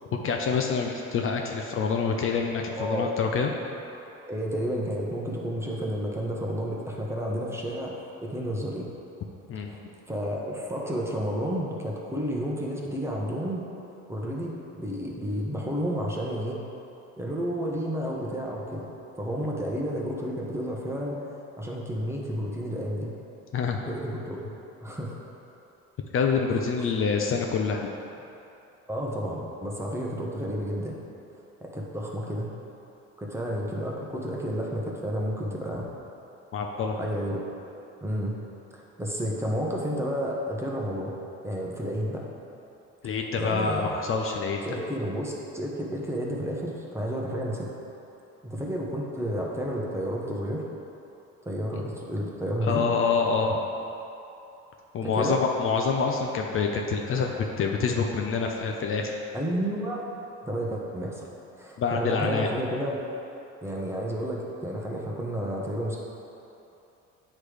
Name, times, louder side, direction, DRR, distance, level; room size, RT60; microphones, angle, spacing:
voice 1, 0.2-3.5 9.5-9.7 23.5-23.8 26.1-27.9 36.5-37.0 43.0-44.7 52.6-53.6 54.9-57.3 57.6-59.1 61.8-62.5, left 5 dB, 45° left, 2 dB, 0.5 m, -26 dB
voice 2, 2.8-3.1 4.3-8.9 9.7-9.8 10.1-13.7 14.1-16.7 17.2-18.8 19.2-23.1 23.9-24.4 24.8-25.2 26.5-26.9 28.9-30.9 31.6-32.5 33.2-35.9 37.0-37.4 38.0-38.3 38.7-41.1 41.4-42.2 43.4-43.9 44.6-47.7 48.4-50.6 51.4-52.8 55.0-55.4 59.3-60.1 60.4-61.3 61.6-63.0 63.6-66.0, equal, 10° right, -3 dB, 0.9 m, -31 dB
8.3 x 3.2 x 4.9 m, 2.9 s
cardioid pair, 110°, 29 cm